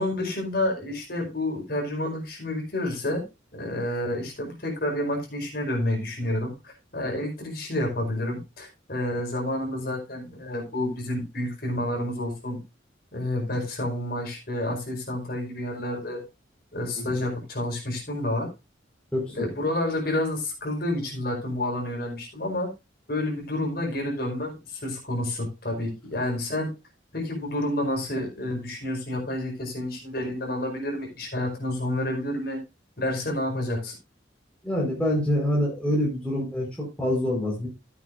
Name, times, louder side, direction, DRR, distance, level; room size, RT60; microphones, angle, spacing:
voice 1, 0.0-3.2 3.5-12.6 13.1-16.2 16.7-18.5 19.3-22.7 23.1-26.7 27.1-32.6 33.0-33.9, left 1 dB, 55° left, 0 dB, 5.0 m, -29 dB
voice 2, 19.1-19.5 34.6-37.7, left 1 dB, 5° left, -5 dB, 4.9 m, -26 dB
15.0 x 8.5 x 2.6 m, 0.26 s
head